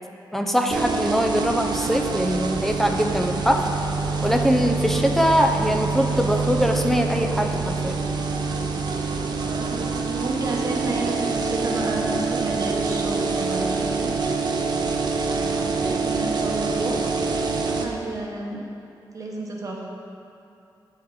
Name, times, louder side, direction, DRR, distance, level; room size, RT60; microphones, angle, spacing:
voice 1, 0.3-3.6 4.2-8.0, equal, 5° left, 3 dB, 0.4 m, -22 dB
sound 1, 0.7-17.8, right 4 dB, 60° right, 0.5 m, -26 dB
voice 2, 9.2-14.1 15.2-17.3 17.6-18.6 19.1-20.0, right 2 dB, 45° right, -2 dB, 0.9 m, -31 dB
8.7 x 4.5 x 3.7 m, 2.7 s
wide cardioid pair, 170°, 8 cm